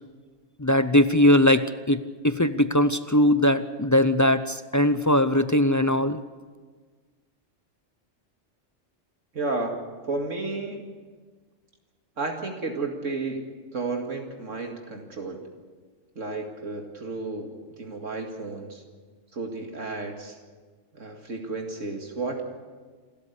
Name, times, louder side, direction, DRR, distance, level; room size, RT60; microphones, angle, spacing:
voice 1, 0.6-6.2, left 1 dB, 20° left, 11 dB, 0.4 m, -20 dB
voice 2, 9.3-9.8 10.1-10.9 12.2-13.4 13.7-15.4 16.2-17.5 17.8-18.8 19.3-20.4 20.9-22.4, right 3 dB, 80° right, 2 dB, 2.5 m, -32 dB
27.5 x 13.5 x 8.2 m, 1.5 s
omnidirectional pair, 1.3 m